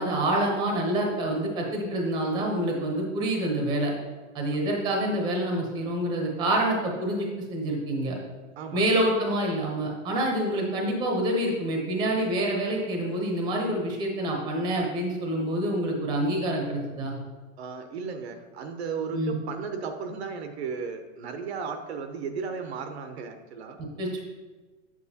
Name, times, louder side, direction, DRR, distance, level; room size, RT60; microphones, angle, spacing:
voice 1, 0.0-3.9 4.3-8.2 8.7-17.2 19.1-19.4 23.8-24.2, right 1 dB, 10° right, 0 dB, 0.7 m, -27 dB
voice 2, 8.6-9.0 17.6-23.8, right 5 dB, 55° right, 7 dB, 0.7 m, -35 dB
7.4 x 7.2 x 2.8 m, 1.3 s
supercardioid pair, 165°, 40 cm